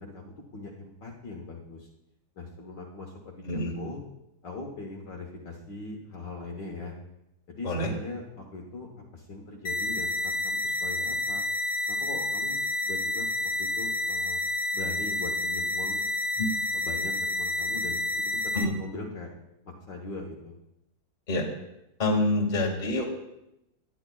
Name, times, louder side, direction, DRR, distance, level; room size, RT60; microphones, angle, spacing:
voice 1, 0.0-1.9 2.4-4.0 4.4-6.9 7.5-11.4 11.9-12.6 12.8-13.3 13.6-14.4 14.7-16.0 16.7-19.3 19.6-20.6, left 3 dB, 55° left, 0 dB, 1.8 m, -40 dB
sound 1, 9.6-18.6, left 2 dB, 85° left, 0.7 m, -29 dB
voice 2, 22.0-23.0, left 2 dB, 20° left, 0 dB, 1.7 m, -26 dB
18.5 x 10.5 x 2.3 m, 0.86 s
omnidirectional pair, 2.4 m